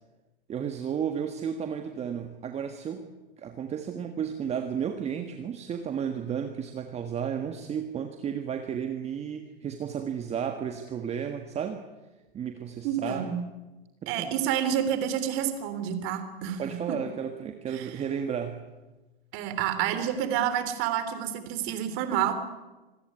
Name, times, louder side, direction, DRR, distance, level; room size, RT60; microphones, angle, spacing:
voice 1, 0.5-3.1 3.4-11.8 12.3-13.3 14.0-14.3 16.6-18.6, right 8 dB, 20° right, 6 dB, 1.6 m, -33 dB
voice 2, 12.8-13.3 14.1-17.0 17.7-18.0 19.3-22.3, right 9 dB, 40° right, 10 dB, 3.5 m, -29 dB
26.0 x 15.0 x 9.7 m, 1.1 s
hypercardioid pair, 125°, 31 cm